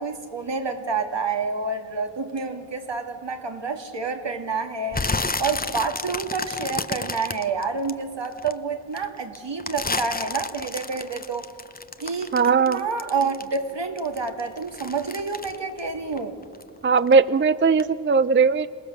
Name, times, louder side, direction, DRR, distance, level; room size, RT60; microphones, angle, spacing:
voice 1, 0.0-5.0 5.4-11.5 12.0-16.4, right 4 dB, 65° right, 5 dB, 2.1 m, -28 dB
sound 1, 4.9-8.5 8.9-13.7 14.0-16.7 17.0-17.4 17.8-17.9, left 3 dB, 20° left, 0.8 m, -31 dB
voice 2, 12.3-12.8 16.8-18.7, right 5 dB, 25° right, 15 dB, 0.5 m, -18 dB
27.5 x 19.0 x 7.2 m, 2.4 s
cardioid pair, 50°, 45 cm